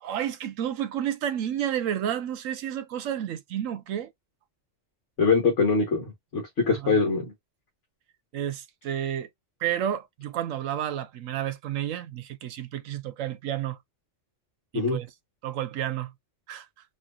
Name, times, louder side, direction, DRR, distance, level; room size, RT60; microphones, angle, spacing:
voice 1, 0.0-4.1 6.7-7.0 8.3-9.3 9.6-13.8 14.7-15.1 15.4-16.1 16.5-16.6, right 10 dB, 85° right, 1.0 m, -31 dB
voice 2, 5.2-7.2 14.7-15.0, left 4 dB, 70° left, 1.5 m, -23 dB
4.2 x 2.7 x 2.4 m
omnidirectional pair, 1.3 m